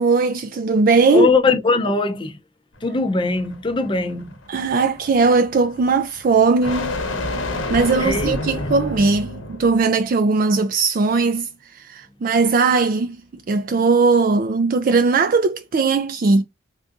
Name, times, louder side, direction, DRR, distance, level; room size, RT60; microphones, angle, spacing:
voice 1, 0.0-1.3 4.5-6.9 7.7-16.4, right 4 dB, 45° right, 0.3 m, -19 dB
voice 2, 1.1-2.4 2.8-4.3 8.0-8.3, left 3 dB, 25° left, 0.5 m, -20 dB
sound 1, 2.8-9.8, left 2 dB, 75° left, 0.9 m, -30 dB
3.5 x 2.5 x 2.4 m
head